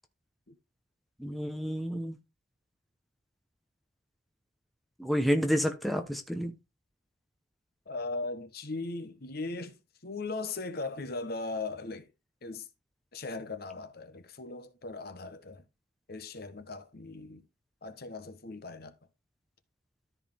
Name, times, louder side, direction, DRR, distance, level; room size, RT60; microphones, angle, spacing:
voice 1, 1.2-2.2 5.0-6.5, equal, ahead, 1.0 m, -29 dB
voice 2, 7.9-9.8 10.0-12.1 12.4-12.7 13.1-15.6 16.1-17.4 17.8-18.9, left 3 dB, 50° left, 1.1 m, -38 dB
13.5 x 4.8 x 3.6 m
head